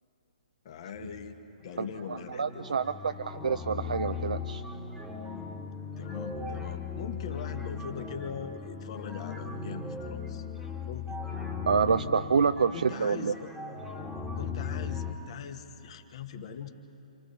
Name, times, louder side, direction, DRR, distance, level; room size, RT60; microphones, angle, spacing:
voice 1, 0.6-2.6 6.0-10.4 10.8-11.2 12.7-13.5 14.4-16.7, left 7 dB, 45° left, 6 dB, 1.3 m, -41 dB
sound 1, 1.0-1.4 1.7-15.1, left 5 dB, ahead, 1.5 m, -38 dB
voice 2, 1.8-4.6 11.7-13.3, right 5 dB, 65° right, 10 dB, 0.5 m, -28 dB
29.0 x 27.5 x 3.3 m, 2.9 s
figure-of-eight pair, 130°, 4 cm